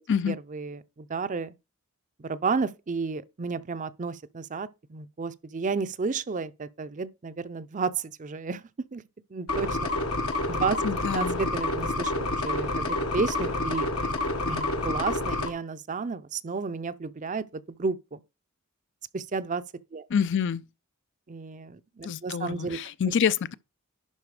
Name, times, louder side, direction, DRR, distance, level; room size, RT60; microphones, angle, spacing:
voice 1, 0.3-1.5 2.2-9.0 9.3-9.9 10.5-10.8 11.1-14.1 14.5-18.2 19.1-19.6 19.9-20.1 21.3-22.8, right 4 dB, 35° right, 0.5 m, -32 dB
sound 1, 9.5-15.5, left 2 dB, 80° left, 1.5 m, -28 dB
voice 2, 10.8-11.4 20.1-20.6 22.0-23.5, left 7 dB, 55° left, 0.4 m, -27 dB
11.0 x 4.3 x 4.8 m
head